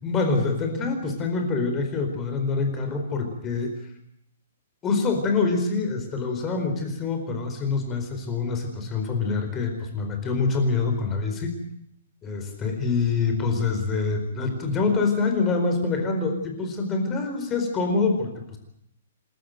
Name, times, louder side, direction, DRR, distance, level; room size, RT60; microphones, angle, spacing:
voice 1, 0.0-3.7 4.8-11.6 12.2-18.6, left 4 dB, 15° left, 4 dB, 4.4 m, -25 dB
29.5 x 12.5 x 9.2 m, 0.75 s
hypercardioid pair, 170°, 0 cm